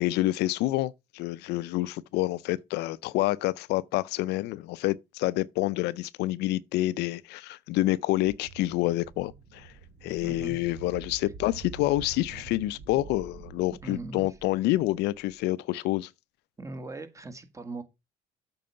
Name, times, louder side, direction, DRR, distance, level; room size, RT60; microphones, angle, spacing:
voice 1, 0.0-9.7 10.0-16.1, left 17 dB, 85° left, 0.5 m, -28 dB
sound 1, 8.2-15.3, right 5 dB, 55° right, 1.6 m, -46 dB
voice 2, 10.2-10.6 13.8-14.2 16.6-17.8, right 2 dB, 20° right, 1.6 m, -39 dB
7.7 x 4.7 x 5.5 m
cardioid pair, 110°, 17 cm